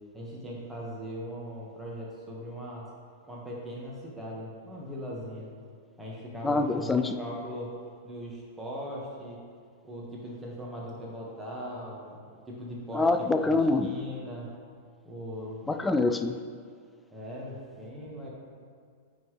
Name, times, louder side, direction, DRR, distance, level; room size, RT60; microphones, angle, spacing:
voice 1, 0.1-2.9 3.3-5.5 6.0-7.7 8.0-9.4 9.8-12.2 12.5-13.1 13.4-14.5 15.0-15.6 17.1-18.3, equal, 10° right, -5 dB, 1.6 m, -39 dB
voice 2, 6.4-7.2 12.9-13.9 15.7-16.3, left 3 dB, 10° left, 8 dB, 0.3 m, -25 dB
9.0 x 4.0 x 3.2 m, 2.1 s
hypercardioid pair, 110°, 0 cm